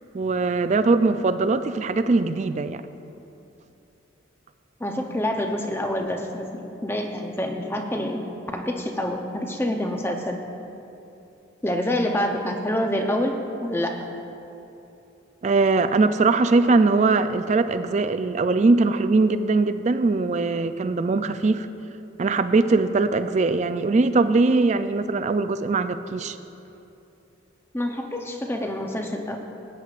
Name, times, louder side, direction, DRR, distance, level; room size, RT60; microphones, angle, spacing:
voice 1, 0.1-2.8 15.4-21.7 22.2-26.4, right 3 dB, 35° right, 11 dB, 0.3 m, -21 dB
voice 2, 4.8-8.3 8.5-10.4 11.6-14.0 27.7-29.4, left 1 dB, 10° left, 3 dB, 0.6 m, -27 dB
19.0 x 9.2 x 2.5 m, 2.9 s
head